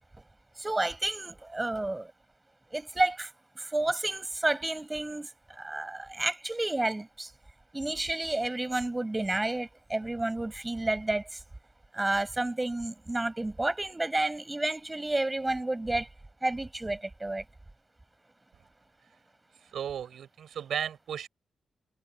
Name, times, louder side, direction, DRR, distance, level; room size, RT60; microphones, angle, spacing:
voice 1, 0.6-2.1 2.7-7.3 7.7-11.4 11.9-16.1 16.4-17.4, right 2 dB, 10° right, 6.6 m, -31 dB
voice 2, 19.7-21.3, right 9 dB, 65° right, 6.0 m, -35 dB
wide cardioid pair, 175°, 0 cm